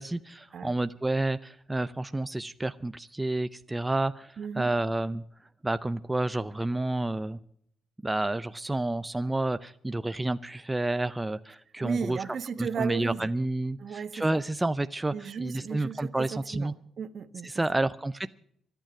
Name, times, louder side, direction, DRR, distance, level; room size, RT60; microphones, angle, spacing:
voice 1, 0.0-5.2 5.6-7.4 8.0-12.2 12.6-16.7 17.4-18.3, right 2 dB, 15° right, 0.5 m, -30 dB
voice 2, 4.4-4.7 11.8-13.3 13.8-14.4 15.1-17.6, right 6 dB, 55° right, 1.1 m, -35 dB
24.0 x 9.2 x 5.9 m
cardioid pair, 90°, 0 cm